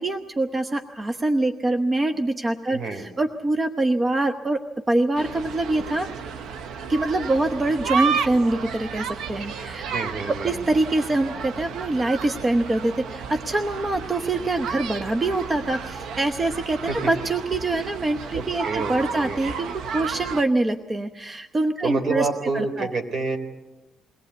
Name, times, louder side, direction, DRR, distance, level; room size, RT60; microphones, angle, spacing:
voice 1, 0.0-4.6 4.9-6.1 6.9-22.3 22.5-22.9, right 2 dB, 25° right, 7 dB, 0.9 m, -24 dB
voice 2, 2.7-3.1 9.9-10.7 16.9-17.1 18.3-19.5 21.8-23.4, right 3 dB, 60° right, 7 dB, 3.2 m, -28 dB
sound 1, 5.2-20.4, right 6 dB, 80° right, 0.9 m, -32 dB
22.5 x 17.5 x 8.2 m, 1.1 s
cardioid pair, 90°, 0 cm